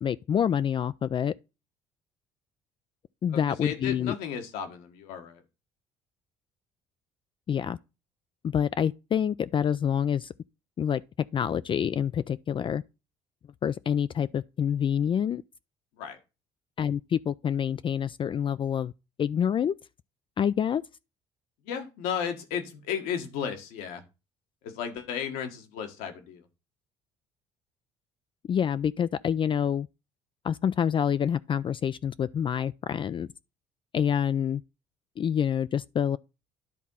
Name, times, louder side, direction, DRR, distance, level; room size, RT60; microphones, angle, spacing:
voice 1, 0.0-1.3 3.2-4.1 7.5-7.8 8.4-10.3 10.8-11.0 11.3-12.8 13.6-15.4 16.8-18.9 19.2-19.7 20.4-20.8 28.5-29.9 30.4-33.3 33.9-34.6 35.2-36.2, left 8 dB, 35° left, 0.3 m, -27 dB
voice 2, 3.3-5.4 16.0-16.2 21.6-24.0 24.6-26.5, left 8 dB, 80° left, 1.6 m, -34 dB
10.5 x 3.6 x 5.6 m
supercardioid pair, 75°, 14 cm